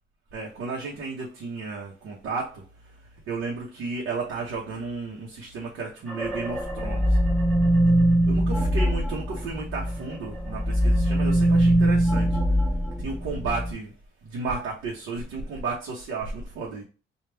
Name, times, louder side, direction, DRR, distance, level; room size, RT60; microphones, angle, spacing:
voice 1, 0.3-2.6 3.3-7.1 8.3-12.3 13.0-13.9 14.2-16.8, right 4 dB, 85° right, 0.9 m, -33 dB
sound 1, 6.1-10.0 10.3-13.7, right 1 dB, 5° left, 1.3 m, -22 dB
3.4 x 2.4 x 4.4 m
cardioid pair, 90°, 20 cm